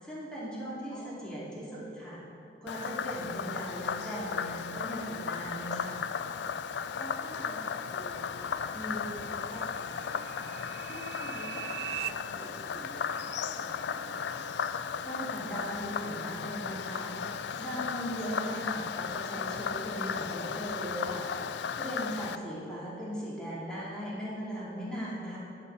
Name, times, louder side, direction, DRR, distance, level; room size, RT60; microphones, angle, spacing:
voice 1, 0.0-2.2 2.6-6.0 15.0-17.1 17.6-21.3 21.8-25.4, equal, 5° left, -8 dB, 2.6 m, -38 dB
voice 2, 0.9-1.4 7.0-8.5 8.7-10.5 10.8-14.5 22.1-22.4, equal, 20° left, -3 dB, 2.0 m, -46 dB
Frog, 2.7-22.4, left 6 dB, 70° left, 0.4 m, -35 dB
sound 1, 7.9-12.1, right 13 dB, 65° right, 0.3 m, -42 dB
11.5 x 5.8 x 7.3 m, 2.6 s
head